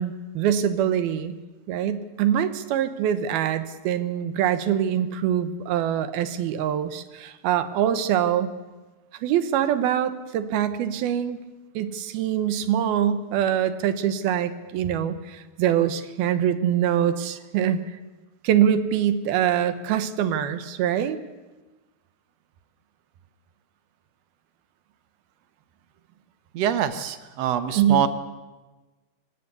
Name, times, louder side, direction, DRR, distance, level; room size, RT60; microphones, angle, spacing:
voice 1, 0.0-1.4 1.7-8.5 9.2-11.4 11.7-17.8 18.4-21.2 27.7-28.1, right 10 dB, 85° right, 11 dB, 3.0 m, -24 dB
voice 2, 26.5-28.1, right 9 dB, 65° right, 10 dB, 1.7 m, -24 dB
26.5 x 16.0 x 8.3 m, 1.2 s
omnidirectional pair, 4.3 m